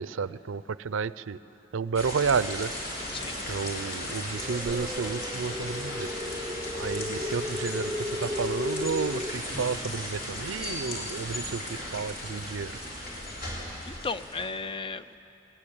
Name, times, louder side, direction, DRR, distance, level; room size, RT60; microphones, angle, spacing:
voice 1, 0.0-1.4 1.7-3.1 3.5-6.1 6.7-12.8, right 5 dB, 70° right, 16 dB, 0.5 m, -31 dB
sound 1, 1.9-14.5, left 1 dB, 45° left, 4.2 m, -36 dB
sound 2, 4.3-9.3, left 1 dB, 10° right, 0.7 m, -35 dB
voice 2, 13.8-15.2, left 4 dB, 25° left, 13 dB, 0.4 m, -35 dB
20.0 x 18.5 x 8.7 m, 3.0 s
head